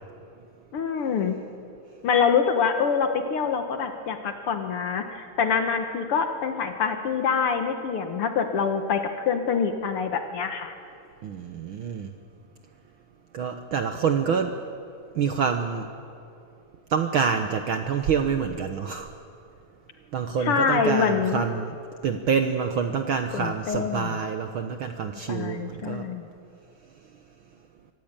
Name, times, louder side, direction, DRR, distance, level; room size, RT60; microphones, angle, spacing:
voice 1, 0.7-1.4 2.0-10.7 20.4-21.4 23.3-24.1 25.3-26.3, left 6 dB, 55° left, 6 dB, 1.8 m, -25 dB
voice 2, 11.2-12.1 13.3-14.5 15.1-15.9 16.9-19.1 20.1-21.7 22.0-26.1, right 6 dB, 70° right, 6 dB, 1.2 m, -27 dB
25.0 x 15.5 x 9.0 m, 2.5 s
omnidirectional pair, 3.4 m